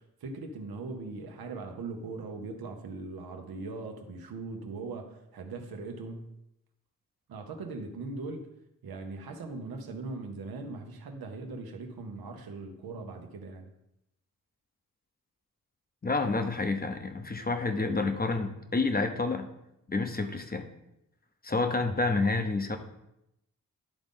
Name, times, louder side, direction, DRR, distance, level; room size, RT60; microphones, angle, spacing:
voice 1, 0.0-6.3 7.3-8.5 8.8-13.7, right 3 dB, 90° right, 4 dB, 0.9 m, -40 dB
voice 2, 16.0-19.5 19.9-20.7 21.4-22.8, left 3 dB, 25° left, 6 dB, 0.8 m, -29 dB
11.0 x 3.9 x 3.7 m, 0.84 s
cardioid pair, 60°, 35 cm